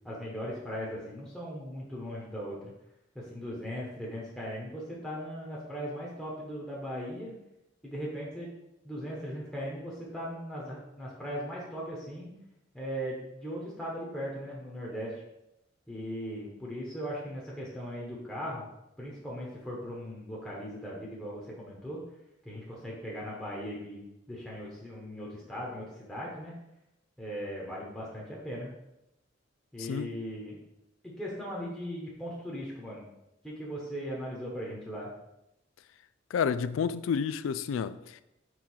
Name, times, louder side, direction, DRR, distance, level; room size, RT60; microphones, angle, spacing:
voice 1, 0.0-2.7 3.1-7.3 7.8-8.5 8.8-12.3 12.7-15.2 15.9-18.7 19.0-22.0 22.4-26.5 27.2-28.7 29.7-30.6 31.0-33.0 33.4-35.1, equal, 5° left, 1.0 m, -38 dB
voice 2, 29.8-30.1 36.3-38.2, left 6 dB, 90° left, 0.3 m, -30 dB
4.7 x 3.7 x 5.5 m
head